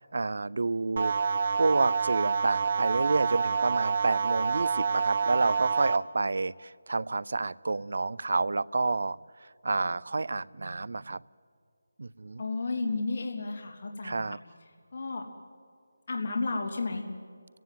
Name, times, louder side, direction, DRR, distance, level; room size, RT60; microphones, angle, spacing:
voice 1, 0.1-1.1 1.6-11.2 12.0-12.4 14.0-14.4, right 3 dB, 60° right, 22 dB, 0.6 m, -29 dB
sound 1, 1.0-6.0, right 5 dB, 40° right, 0.8 m, -27 dB
voice 2, 12.4-14.4 14.9-15.2 16.1-17.0, left 3 dB, 40° left, 0 dB, 3.2 m, -32 dB
30.0 x 17.0 x 9.3 m, 2.3 s
figure-of-eight pair, 170°, 0 cm